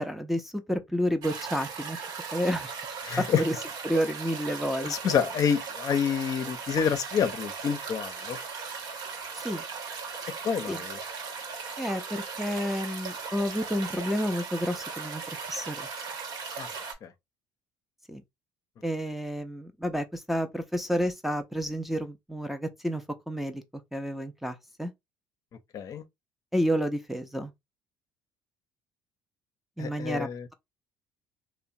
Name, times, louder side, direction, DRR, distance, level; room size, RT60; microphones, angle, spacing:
voice 1, 0.0-2.0 2.3-2.7 3.2-3.5 3.8-4.9 9.4-9.6 10.7-10.8 11.8-15.2 15.5-15.9 18.1-18.2 18.8-23.6 23.9-24.9 26.5-27.5 29.8-30.5, equal, ahead, 0.5 m, -30 dB
sound 1, 1.2-16.9, right 5 dB, 60° right, 0.8 m, -38 dB
voice 2, 3.0-3.4 4.8-8.4 10.4-11.0 16.6-16.7 17.0-17.1 25.7-26.0 29.8-30.5, left 7 dB, 50° left, 0.5 m, -28 dB
2.8 x 2.1 x 2.6 m
supercardioid pair, 80°, 8 cm